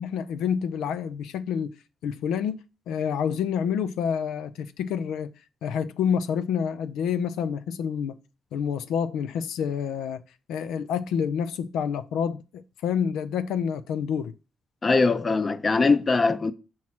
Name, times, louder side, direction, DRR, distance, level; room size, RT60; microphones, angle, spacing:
voice 1, 0.0-1.7 2.0-2.6 2.9-5.3 5.6-8.2 8.5-10.2 10.5-14.3, left 7 dB, 85° left, 0.4 m, -28 dB
voice 2, 14.8-16.5, left 3 dB, 30° left, 0.6 m, -21 dB
7.2 x 3.1 x 5.8 m
cardioid pair, 90°, 0 cm